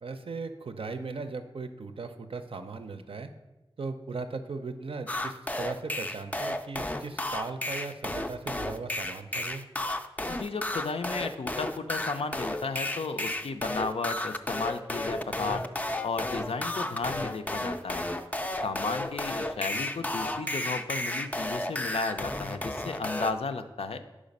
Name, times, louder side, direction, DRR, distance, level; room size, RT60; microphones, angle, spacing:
voice 1, 0.0-3.3 3.8-9.6, right 4 dB, 70° right, 8 dB, 0.5 m, -38 dB
sound 1, 5.1-23.3, left 1 dB, 15° left, 0.3 m, -32 dB
voice 2, 10.3-15.6 16.0-18.1 18.6-24.0, left 4 dB, 90° left, 8 dB, 0.4 m, -34 dB
5.0 x 4.9 x 5.3 m, 1.0 s
wide cardioid pair, 75°, 10 cm